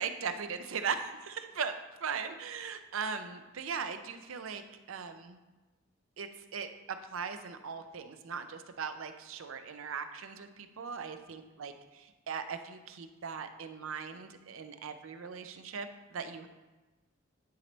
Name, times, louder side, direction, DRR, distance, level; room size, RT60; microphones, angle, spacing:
voice 1, 0.0-1.7 2.0-4.6 4.9-5.4 6.2-16.5, right 6 dB, 75° right, 9 dB, 0.5 m, -39 dB
10.5 x 4.0 x 3.3 m, 1.2 s
head